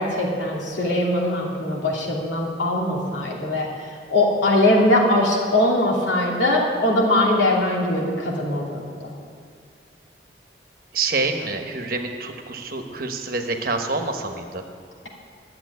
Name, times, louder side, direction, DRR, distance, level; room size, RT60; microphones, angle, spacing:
voice 1, 0.0-3.7 4.1-9.1, left 1 dB, 85° left, -2 dB, 2.8 m, -21 dB
voice 2, 10.9-14.6, right 3 dB, 50° right, 5 dB, 1.1 m, -27 dB
11.5 x 7.6 x 9.5 m, 2.1 s
head